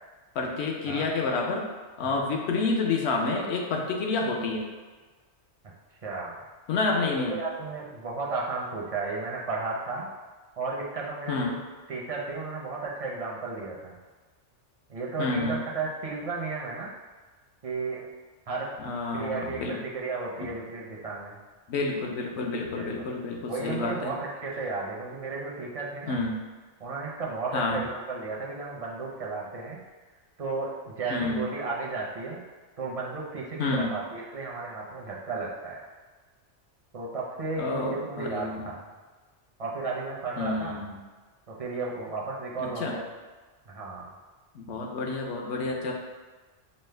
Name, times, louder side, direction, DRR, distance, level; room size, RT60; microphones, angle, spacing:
voice 1, 0.3-1.7 2.0-4.7 6.7-7.4 11.3-11.6 15.2-15.6 18.8-19.8 20.4-20.5 21.7-24.1 26.1-26.4 27.5-27.8 31.1-31.5 33.6-33.9 37.6-38.7 40.4-41.0 42.6-43.0 44.5-45.9, left 3 dB, 70° left, 0 dB, 0.9 m, -29 dB
voice 2, 6.0-6.4 6.9-10.1 10.6-11.6 11.9-13.9 14.9-16.9 17.6-18.1 18.5-18.7 19.1-21.4 22.7-22.9 23.5-26.2 26.8-29.8 30.4-32.4 32.8-35.8 36.9-38.8 39.6-40.8 41.5-43.0 43.7-44.1, right 3 dB, 45° right, -3 dB, 0.5 m, -34 dB
5.3 x 2.0 x 3.2 m, 1.4 s
omnidirectional pair, 1.2 m